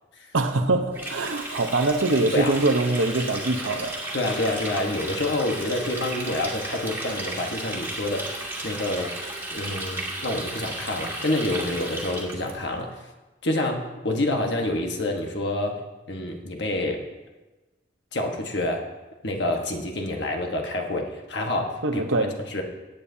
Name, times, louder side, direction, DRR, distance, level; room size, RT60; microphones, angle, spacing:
voice 1, 0.3-4.0 21.8-22.3, right 2 dB, 90° right, 6 dB, 0.9 m, -23 dB
Water tap faucet, 0.9-12.5, right 1 dB, 10° right, 1.8 m, -34 dB
voice 2, 4.1-9.1 9.5-13.1 13.4-15.8 16.1-17.0 18.1-18.9 19.2-22.0 22.5-22.6, left 1 dB, 60° left, 2 dB, 1.3 m, -27 dB
17.0 x 9.0 x 2.8 m, 1.2 s
head